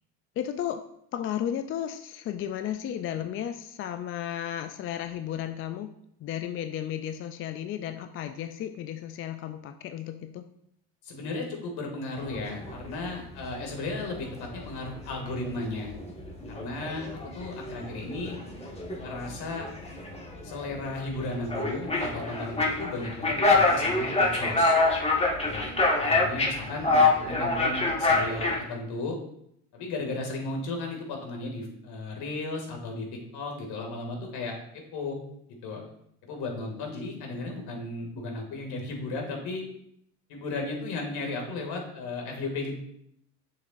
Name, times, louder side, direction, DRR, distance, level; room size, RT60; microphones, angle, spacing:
voice 1, 0.4-0.8 1.1-5.9 6.2-10.4, left 10 dB, 30° left, 8 dB, 0.4 m, -34 dB
voice 2, 11.0-15.9 16.5-17.1 17.3-18.3 19.0-19.7 20.4-24.8 25.4-25.7 26.0-29.2 29.7-35.2 35.6-35.8 36.2-39.6 40.3-42.7, left 2 dB, 55° left, 2 dB, 2.5 m, -35 dB
sound 1, 12.3-13.1 13.4-13.9 14.2-28.6, left 3 dB, 15° left, 1.6 m, -26 dB
6.9 x 6.6 x 2.6 m, 0.73 s
hypercardioid pair, 90°, 46 cm